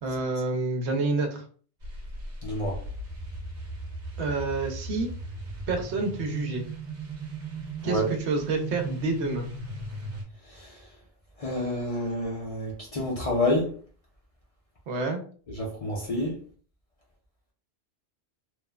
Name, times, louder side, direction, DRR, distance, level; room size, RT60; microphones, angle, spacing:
voice 1, 0.0-1.4 4.2-5.1 5.7-6.7 7.8-9.5 14.9-15.2, right 3 dB, 90° right, 0.9 m, -28 dB
sound 1, 1.8-10.2, right 2 dB, 50° right, 0.9 m, -37 dB
voice 2, 2.4-2.8 7.8-8.0 10.6-10.7 11.4-13.7 15.6-16.4, left 1 dB, 45° left, 0.5 m, -28 dB
3.0 x 2.0 x 2.3 m
omnidirectional pair, 1.1 m